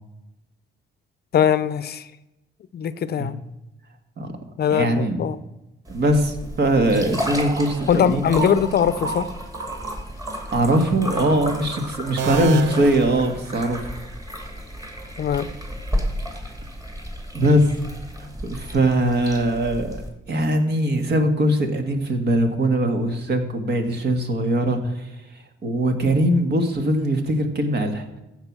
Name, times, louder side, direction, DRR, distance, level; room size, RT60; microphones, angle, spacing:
voice 1, 1.3-2.1 2.7-3.4 4.6-5.4 7.9-9.3 15.2-15.5, left 8 dB, 55° left, 15 dB, 0.6 m, -21 dB
voice 2, 4.7-5.3 5.9-8.2 10.5-13.8 17.3-17.7 18.5-25.1 25.6-28.0, right 1 dB, 55° right, 6 dB, 1.8 m, -21 dB
sound 1, 5.9-20.1, equal, 20° right, 2.4 m, -32 dB
sound 2, 12.2-14.1, right 6 dB, 80° right, 0.9 m, -30 dB
14.5 x 4.9 x 6.1 m, 0.97 s
cardioid pair, 90°, 20 cm